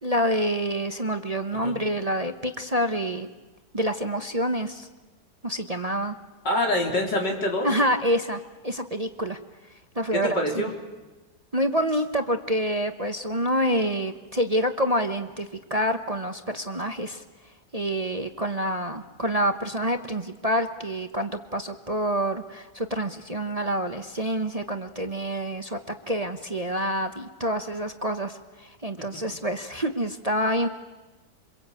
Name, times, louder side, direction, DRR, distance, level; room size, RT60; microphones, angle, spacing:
voice 1, 0.0-3.3 3.7-4.9 5.4-6.1 7.6-9.4 10.0-10.4 11.5-17.2 17.7-30.7, equal, 25° right, 6 dB, 1.0 m, -27 dB
voice 2, 6.4-7.7 10.1-10.7, left 1 dB, 85° left, 0 dB, 4.7 m, -25 dB
28.0 x 25.0 x 8.5 m, 1.2 s
omnidirectional pair, 1.8 m